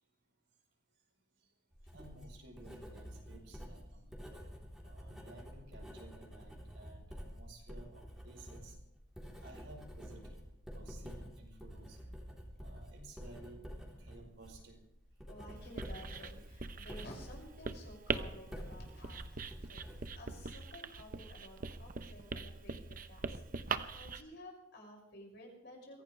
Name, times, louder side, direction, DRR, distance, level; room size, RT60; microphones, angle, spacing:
Writing, 1.7-20.6, equal, 5° right, 3.7 m, -49 dB
voice 1, 1.9-4.1 4.8-8.7 9.4-10.4 10.7-12.0 12.6-13.7 14.0-14.8, right 2 dB, 75° right, 1 dB, 5.4 m, -55 dB
voice 2, 15.3-26.0, equal, 65° left, 0 dB, 6.3 m, -53 dB
Writing 2, 15.6-24.2, right 4 dB, 50° right, 0.8 m, -42 dB
23.5 x 16.5 x 3.4 m, 0.81 s
head